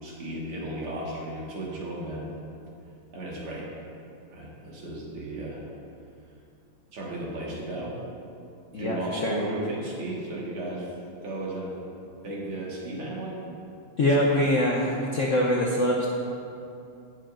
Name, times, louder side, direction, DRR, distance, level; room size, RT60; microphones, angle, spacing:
voice 1, 0.0-2.3 3.1-3.7 4.3-5.6 6.9-8.0 8.7-10.9 11.2-11.7 12.2-13.4, right 1 dB, 85° right, -5 dB, 2.7 m, -34 dB
voice 2, 8.7-9.4 14.0-16.1, left 1 dB, 70° left, -2 dB, 0.7 m, -24 dB
18.0 x 6.6 x 2.6 m, 2.6 s
omnidirectional pair, 2.3 m